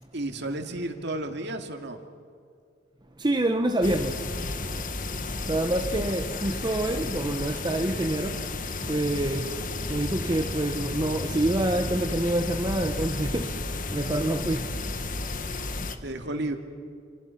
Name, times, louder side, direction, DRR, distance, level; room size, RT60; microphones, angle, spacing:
voice 1, 0.1-2.0 16.0-16.6, right 1 dB, 65° right, 5 dB, 2.4 m, -32 dB
voice 2, 3.2-4.2 5.5-8.4 8.9-9.6 9.9-13.5 13.9-14.6, right 1 dB, 25° right, 5 dB, 1.0 m, -26 dB
sound 1, 3.8-16.0, left 3 dB, 45° left, 1.5 m, -32 dB
29.0 x 27.5 x 5.9 m, 2.2 s
head